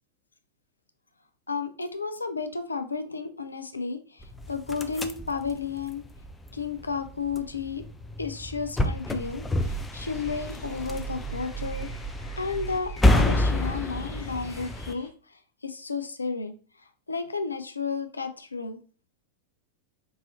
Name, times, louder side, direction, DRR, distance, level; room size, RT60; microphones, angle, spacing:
voice 1, 1.5-6.0 6.5-7.8 8.2-11.9 12.4-15.1 15.6-16.6 17.1-18.8, left 5 dB, 80° left, 8 dB, 0.4 m, -32 dB
sound 1, 4.2-14.9, left 1 dB, 10° left, 0.4 m, -29 dB
sound 2, 9.9-15.1, left 3 dB, 65° left, 0.8 m, -50 dB
4.7 x 2.7 x 2.6 m, 0.38 s
figure-of-eight pair, 90°, 0 cm